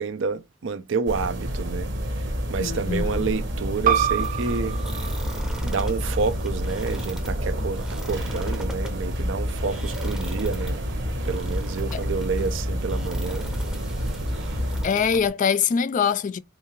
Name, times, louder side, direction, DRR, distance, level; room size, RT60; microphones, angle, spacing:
voice 1, 0.0-1.9 2.2-4.8 5.6-10.8 11.2-13.5, right 5 dB, 90° right, 0.5 m, -29 dB
sound 1, 1.1-14.9, equal, 70° right, 1.0 m, -29 dB
voice 2, 2.6-3.3 11.9-12.0 14.8-16.4, left 6 dB, 45° left, 0.3 m, -23 dB
sound 2, 3.8-9.0, right 9 dB, 45° right, 0.6 m, -30 dB
sound 3, 4.2-15.3, equal, 5° right, 0.7 m, -38 dB
3.7 x 2.5 x 2.9 m
head